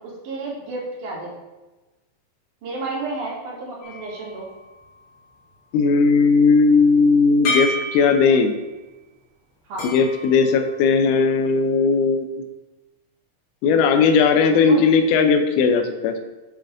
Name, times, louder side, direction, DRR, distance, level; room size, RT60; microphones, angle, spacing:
voice 1, 0.0-1.4 2.6-4.5 9.7-9.9 14.7-14.8, right 3 dB, 60° right, -5 dB, 3.4 m, -31 dB
sound 1, 3.8-5.5 7.4-8.7 9.8-11.3, left 1 dB, 45° left, 3.6 m, -31 dB
voice 2, 5.7-8.5 9.8-12.4 13.6-16.2, left 5 dB, 80° left, 6 dB, 2.0 m, -17 dB
8.7 x 7.7 x 2.6 m, 1.1 s
omnidirectional pair, 4.2 m